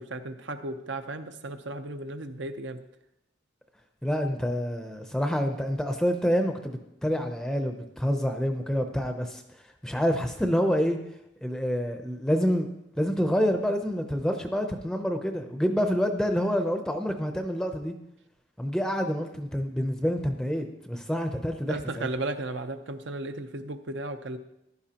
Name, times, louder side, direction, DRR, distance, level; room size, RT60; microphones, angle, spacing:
voice 1, 0.0-2.8 21.7-24.4, right 2 dB, 70° right, 8 dB, 0.8 m, -35 dB
voice 2, 4.0-9.4 9.8-11.0 11.4-12.7 13.0-17.9 18.6-22.1, equal, 5° left, 5 dB, 0.6 m, -27 dB
15.0 x 11.0 x 2.9 m, 0.84 s
head